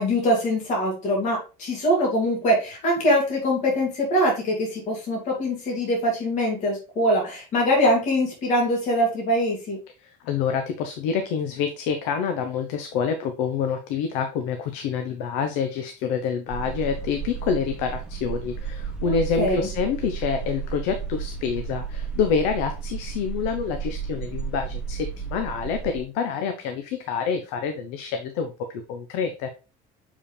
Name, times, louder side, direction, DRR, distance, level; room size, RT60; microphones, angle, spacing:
voice 1, 0.0-9.8 19.0-19.7, equal, 40° left, -1 dB, 2.7 m, -23 dB
voice 2, 10.0-29.5, left 6 dB, 85° left, 7 dB, 0.9 m, -27 dB
sound 1, 16.5-26.0, right 6 dB, 5° right, 1.0 m, -33 dB
7.2 x 4.9 x 3.3 m, 0.32 s
cardioid pair, 170°, 18 cm